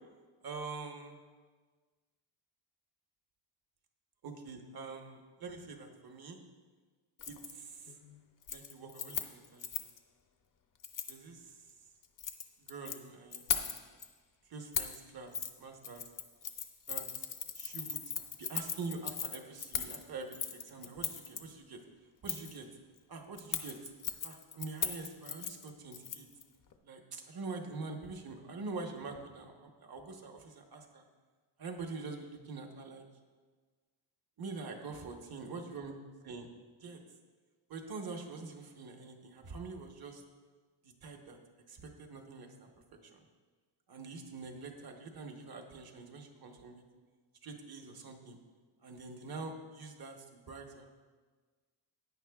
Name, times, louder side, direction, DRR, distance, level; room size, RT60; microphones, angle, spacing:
voice 1, 0.4-1.2 4.2-6.4 7.3-7.9 8.5-9.7 11.1-11.5 12.7-13.8 14.5-15.3 15.6-16.0 16.9-17.0 17.5-18.0 18.4-21.8 22.2-22.7 23.1-23.7 24.2-26.3 26.8-31.0 31.6-33.0 34.4-35.9 36.2-36.5 36.8-37.0 37.7-40.2 41.0-41.4 41.7-42.7 43.9-46.8 47.4-48.4 48.8-50.9, right 4 dB, 50° right, 4 dB, 1.1 m, -45 dB
Keys jangling, 7.2-7.5 7.9-8.1 8.4-10.0 10.8-11.2 12.0-13.0 13.3-14.0 14.7-15.0 15.3-15.5 15.8-21.4 22.3-22.6 23.4-26.4 26.7-26.8, left 7 dB, 45° left, 0.6 m, -38 dB
16.0 x 9.5 x 2.3 m, 1.4 s
wide cardioid pair, 180°, 47 cm